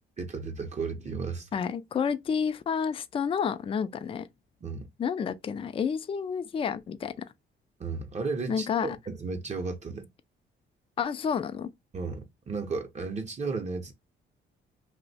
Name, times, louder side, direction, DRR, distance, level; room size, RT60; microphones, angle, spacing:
voice 1, 0.2-1.5 4.6-4.9 7.8-8.7 9.1-10.1 11.9-13.9, right 4 dB, 35° right, 0.7 m, -34 dB
voice 2, 1.5-4.3 5.0-7.1 8.5-9.0 11.0-11.7, left 7 dB, 30° left, 0.3 m, -30 dB
2.6 x 2.1 x 4.0 m
cardioid pair, 90°, 20 cm